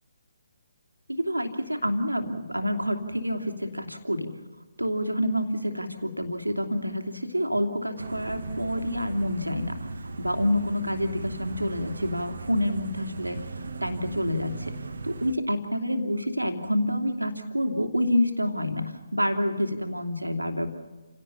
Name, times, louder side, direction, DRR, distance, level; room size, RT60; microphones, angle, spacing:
voice 1, 1.1-4.3 4.8-13.4 13.8-14.7 15.0-20.7, equal, 85° right, 5 dB, 2.9 m, -28 dB
sound 1, 8.0-15.3, right 3 dB, 60° right, 1.7 m, -38 dB
28.5 x 17.5 x 7.2 m, 1.3 s
figure-of-eight pair, 140°, 0 cm